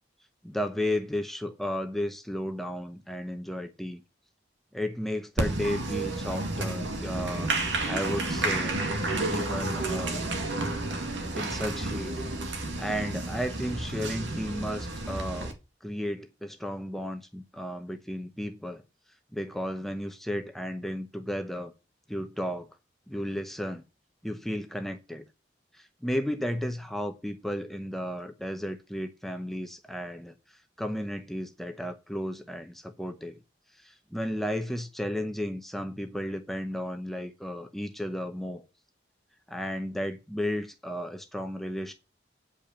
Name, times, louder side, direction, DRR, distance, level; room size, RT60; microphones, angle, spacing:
voice 1, 0.4-4.0 4.7-8.8 9.2-10.3 11.3-12.1 12.8-15.6 15.8-18.8 19.3-21.7 22.1-22.7 23.1-23.9 24.2-25.2 25.7-33.4 33.7-38.6 39.5-41.9, equal, ahead, 0.8 m, -34 dB
Applause, 5.4-15.5, right 2 dB, 90° right, 2.1 m, -31 dB
8.5 x 5.4 x 7.2 m
head